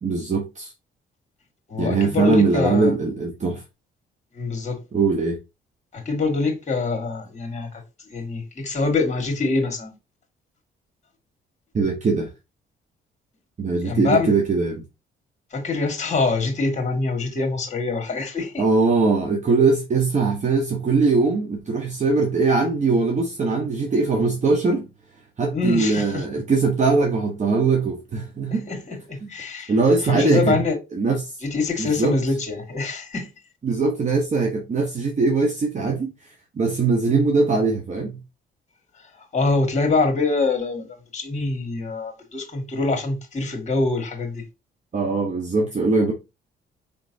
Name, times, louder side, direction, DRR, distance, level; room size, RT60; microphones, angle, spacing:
voice 1, 0.0-0.7 1.8-3.6 4.9-5.4 11.7-12.3 13.6-14.8 18.6-24.9 25.4-28.7 29.2-29.3 29.7-30.6 30.9-31.4 31.8-32.1 33.6-36.1 36.6-38.2 44.9-46.1, right 4 dB, 35° right, 1.0 m, -21 dB
voice 2, 1.7-2.9 4.3-4.8 5.9-7.8 8.1-9.9 13.8-14.4 15.5-18.6 25.5-26.2 28.5-29.7 30.0-30.8 31.4-33.3 39.2-44.5, left 3 dB, 35° left, 1.8 m, -24 dB
5.1 x 3.1 x 2.7 m
cardioid pair, 90°, 20 cm